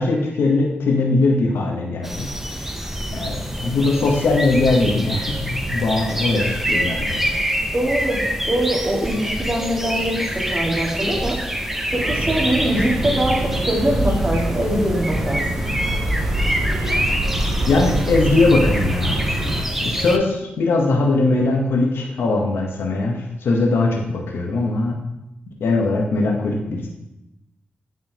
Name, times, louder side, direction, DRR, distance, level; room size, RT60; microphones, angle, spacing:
voice 1, 0.0-2.3 3.1-7.2 17.7-19.2 19.8-25.0 25.6-26.9, left 3 dB, 85° left, 0 dB, 0.9 m, -20 dB
sound 1, 2.0-20.2, equal, 5° right, 0.6 m, -26 dB
voice 2, 7.7-11.4 11.9-15.4, right 1 dB, 35° right, -2 dB, 1.8 m, -22 dB
sound 2, 11.9-19.6, right 1 dB, 75° right, 1.0 m, -25 dB
9.2 x 3.7 x 2.8 m, 0.92 s
cardioid pair, 60°, 4 cm